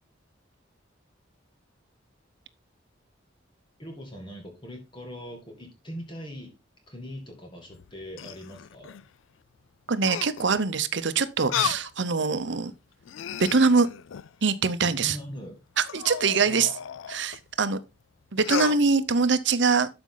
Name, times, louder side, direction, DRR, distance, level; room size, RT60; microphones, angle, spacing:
voice 1, 3.8-6.5 6.9-9.0 11.5-11.8 14.8-15.6 16.4-16.7, equal, 25° left, 2.0 m, -41 dB
sound 1, 7.7-9.0 10.0-10.6 11.5-11.9 12.5-12.6 13.0-14.4 15.9-17.4 18.4-18.8, left 9 dB, 75° left, 0.4 m, -34 dB
voice 2, 9.9-12.7 13.4-13.9 14.4-15.2 15.8-16.7 17.1-17.8 18.3-19.9, right 4 dB, 60° right, 0.8 m, -23 dB
12.5 x 5.2 x 3.9 m
head